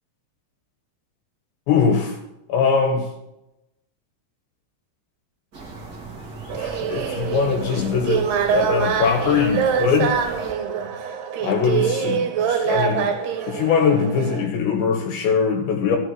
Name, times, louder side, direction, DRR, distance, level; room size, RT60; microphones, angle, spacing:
voice 1, 1.7-2.2 2.5-3.1 6.5-10.2 11.4-13.2 13.5-16.0, left 6 dB, 75° left, 3 dB, 3.5 m, -21 dB
sound 1, 5.5-10.5, right 3 dB, 40° right, 1.4 m, -38 dB
sound 2, 6.5-14.5, right 7 dB, 65° right, 3.2 m, -24 dB
13.5 x 7.3 x 7.7 m, 0.89 s
omnidirectional pair, 5.3 m